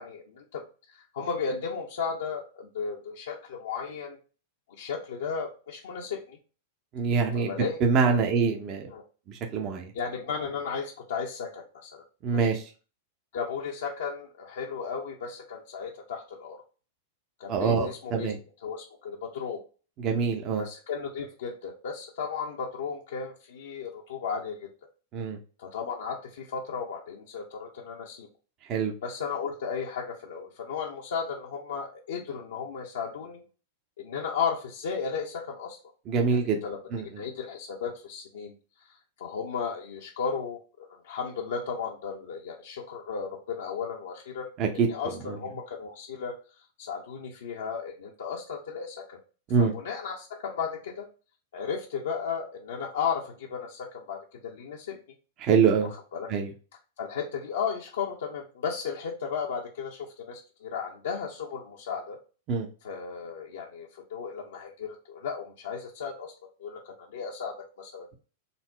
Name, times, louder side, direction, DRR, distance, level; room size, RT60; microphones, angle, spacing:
voice 1, 0.0-4.2 4.8-6.4 7.3-7.8 8.1-8.2 8.8-9.0 9.9-12.0 12.3-12.6 13.3-16.6 17.4-18.3 18.6-19.6 20.6-24.7 25.6-28.3 29.0-33.4 34.0-35.8 36.3-36.8 37.2-38.5 38.9-46.4 46.8-49.2 49.6-51.1 51.5-55.0 56.1-56.3 57.0-62.2 62.8-66.3 66.6-68.1, left 6 dB, 75° left, -1 dB, 0.7 m, -35 dB
voice 2, 6.9-7.5 7.8-8.8 9.3-9.9 12.2-12.6 17.5-18.4 20.0-20.6 25.1-25.4 28.7-28.9 36.1-36.6 36.9-37.0 44.6-44.9 45.3-45.4 49.5-49.7 55.4-55.9 56.3-56.5 62.5-62.7, right 5 dB, 40° right, 3 dB, 0.7 m, -24 dB
4.0 x 2.1 x 4.4 m, 0.36 s
hypercardioid pair, 105°, 0 cm